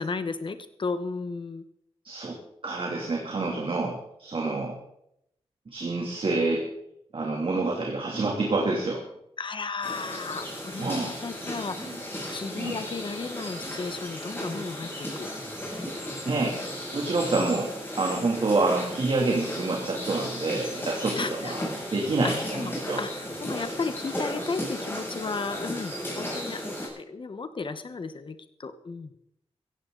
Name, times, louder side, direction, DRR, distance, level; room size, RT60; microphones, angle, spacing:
voice 1, 0.0-1.6 9.4-12.0 12.3-15.3 17.4-17.5 21.2-21.5 22.2-22.7 23.0-26.6 27.0-29.1, left 4 dB, 50° left, 10 dB, 1.3 m, -34 dB
voice 2, 2.0-2.4 2.6-4.8 5.7-6.7 7.1-9.0 10.8-11.1 12.6-12.8 16.3-16.6 16.9-17.7 18.0-23.0, right 3 dB, 55° right, -1 dB, 3.0 m, -27 dB
sound 1, 9.8-26.9, equal, 20° left, 7.5 m, -35 dB
17.0 x 15.0 x 4.0 m, 0.77 s
wide cardioid pair, 110°, 11 cm